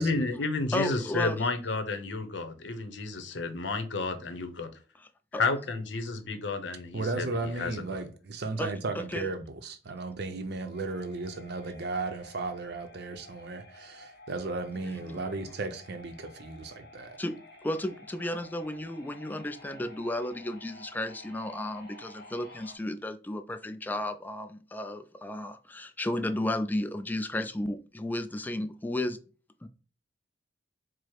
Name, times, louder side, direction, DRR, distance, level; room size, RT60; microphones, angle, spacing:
voice 1, 0.0-4.7 5.3-8.0, left 3 dB, 85° left, 0.7 m, -31 dB
voice 2, 0.7-1.5 5.0-5.4 8.6-8.7 9.1-9.3 14.8-15.3 17.2-17.3 17.6-29.2 29.6-29.7, left 1 dB, 10° left, 0.3 m, -33 dB
voice 3, 6.9-17.2, right 3 dB, 65° right, 0.6 m, -35 dB
sound 1, 10.7-22.8, left 1 dB, 55° left, 1.4 m, -52 dB
4.7 x 2.0 x 4.5 m
head